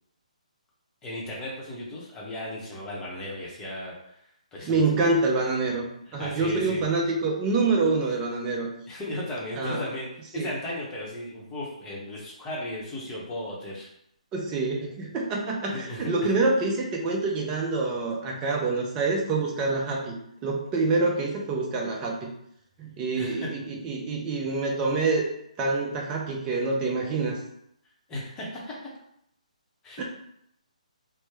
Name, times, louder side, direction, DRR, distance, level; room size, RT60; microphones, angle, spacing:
voice 1, 1.0-4.2 4.5-4.8 6.1-6.8 7.9-8.0 8.9-10.1 10.3-13.9 15.7-16.1 23.2-23.5 28.1-28.9 29.8-30.0, left 1 dB, 15° left, -4 dB, 0.8 m, -36 dB
voice 2, 4.7-5.9 6.1-8.7 9.5-9.8 10.3-10.5 14.3-20.1 20.4-22.3 22.8-25.3 25.6-27.4 30.0-30.1, right 3 dB, 20° right, -1 dB, 0.5 m, -26 dB
3.2 x 2.0 x 3.1 m, 0.74 s
figure-of-eight pair, 140°, 4 cm